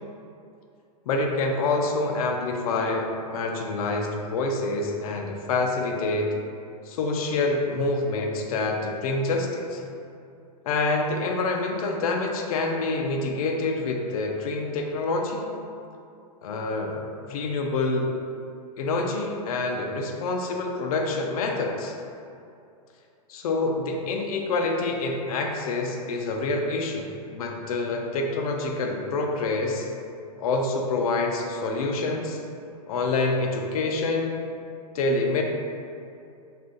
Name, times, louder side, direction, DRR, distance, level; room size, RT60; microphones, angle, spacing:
voice 1, 1.1-6.4 6.9-9.8 10.7-15.5 16.4-18.1 18.8-21.9 23.3-29.9 30.4-32.4 32.9-34.4 34.9-35.4, left 3 dB, 65° left, 2 dB, 0.5 m, -27 dB
2.5 x 2.4 x 3.7 m, 2.5 s
hypercardioid pair, 145°, 20 cm